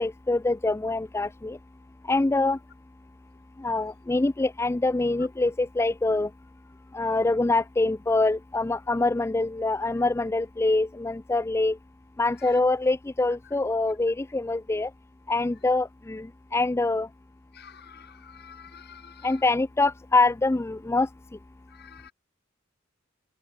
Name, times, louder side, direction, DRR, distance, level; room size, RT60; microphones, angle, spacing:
voice 1, 0.0-1.6 2.0-2.6 3.6-6.3 6.9-11.8 12.2-14.9 15.3-17.1 19.2-21.1, left 2 dB, 15° left, 0.4 m, -25 dB
voice 2, 17.5-19.3 21.7-22.1, left 8 dB, 50° left, 3.2 m, -49 dB
head